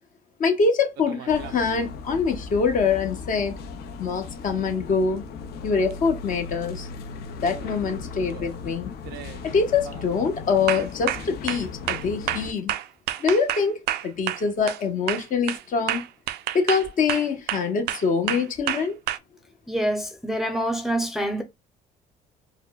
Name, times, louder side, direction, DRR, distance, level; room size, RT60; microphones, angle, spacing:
voice 1, 0.4-3.6 4.0-5.2 5.6-6.9 7.4-8.9 9.4-12.7 13.2-16.0 16.5-19.0, left 5 dB, 50° left, 1.2 m, -24 dB
sound 1, 1.0-1.7 5.9-6.0 7.5-7.8 8.2-8.6 9.0-9.4 9.8-10.1 10.7-14.8 15.1-19.2, right 13 dB, 75° right, 0.4 m, -30 dB
sound 2, 1.3-12.5, left 4 dB, 70° left, 0.7 m, -37 dB
voice 2, 19.7-21.4, right 1 dB, ahead, 0.7 m, -26 dB
4.8 x 2.1 x 2.3 m
cardioid pair, 110°, 17 cm